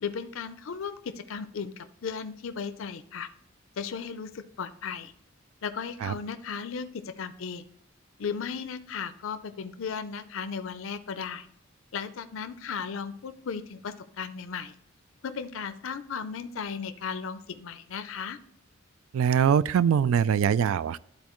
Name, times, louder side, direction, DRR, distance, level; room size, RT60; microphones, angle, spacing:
voice 1, 0.0-3.3 3.8-5.1 5.6-7.6 8.2-11.5 11.9-14.7 15.2-18.4, left 6 dB, 70° left, 10 dB, 0.5 m, -36 dB
voice 2, 19.1-21.0, right 8 dB, 75° right, 18 dB, 0.3 m, -23 dB
11.5 x 4.2 x 3.0 m, 0.69 s
head